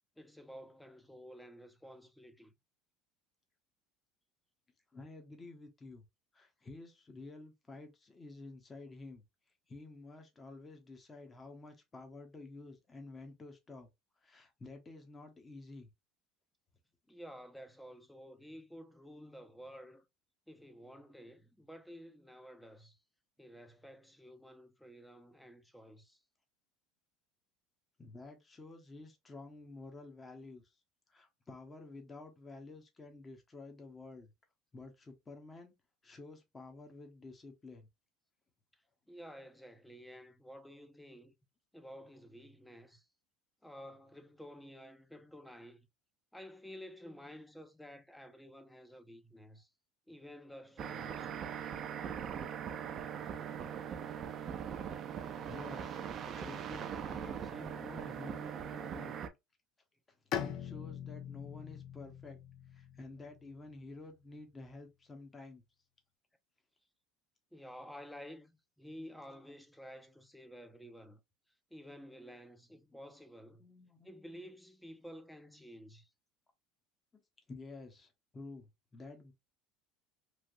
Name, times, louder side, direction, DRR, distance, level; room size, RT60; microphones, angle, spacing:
voice 1, 0.2-2.5 17.1-20.0 20.5-23.0 23.4-26.2 38.7-38.8 39.1-41.3 41.7-43.1 43.6-45.9 46.3-49.7 50.1-51.3 67.5-68.5 68.8-71.2 71.7-73.7 74.0-76.1, equal, 5° left, 0.6 m, -52 dB
voice 2, 4.9-6.0 6.3-9.2 9.7-13.9 14.2-15.9 28.0-30.8 31.1-34.3 34.7-35.7 36.0-37.9 55.4-56.0 56.4-59.2 60.3-62.4 62.7-65.6 73.6-74.1 77.1-77.2 77.5-79.3, left 3 dB, 20° left, 0.9 m, -51 dB
sound 1, 50.8-59.3, right 8 dB, 45° right, 0.5 m, -41 dB
Bowed string instrument, 60.3-63.9, left 9 dB, 55° left, 0.6 m, -42 dB
3.2 x 2.5 x 2.5 m
supercardioid pair, 95°, 0 cm